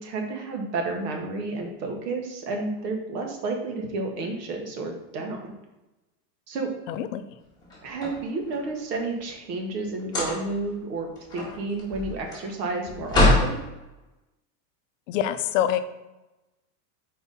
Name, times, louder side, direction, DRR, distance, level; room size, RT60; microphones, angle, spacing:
voice 1, 0.0-5.5 6.5-6.7 7.8-11.1 11.3-13.6, right 3 dB, 85° right, 2 dB, 1.5 m, -31 dB
voice 2, 6.9-7.2 15.1-15.8, left 11 dB, 50° left, 10 dB, 0.5 m, -25 dB
sound 1, 7.6-8.8 10.0-10.7 11.0-13.5, left 2 dB, 10° left, 1.7 m, -24 dB
5.4 x 4.7 x 4.1 m, 1.0 s
supercardioid pair, 160°, 48 cm